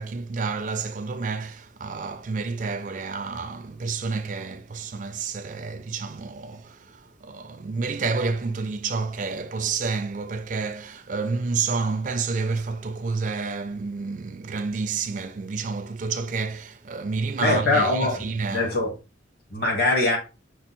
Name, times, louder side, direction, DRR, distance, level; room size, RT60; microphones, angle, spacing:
voice 1, 0.0-18.7, right 4 dB, 45° right, 0.4 m, -29 dB
voice 2, 17.3-18.2 18.5-18.9 19.5-20.2, left 2 dB, 55° left, 1.9 m, -22 dB
6.0 x 2.0 x 4.3 m
head